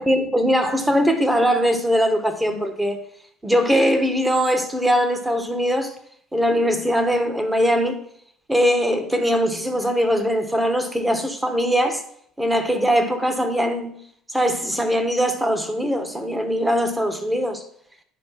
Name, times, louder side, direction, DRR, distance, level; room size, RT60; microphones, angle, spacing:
voice 1, 0.0-3.0 3.4-5.9 6.3-8.0 8.5-12.0 12.4-14.0 14.3-17.6, equal, 5° right, 1.4 m, -21 dB
10.5 x 5.2 x 5.9 m
cardioid pair, 120°, 0 cm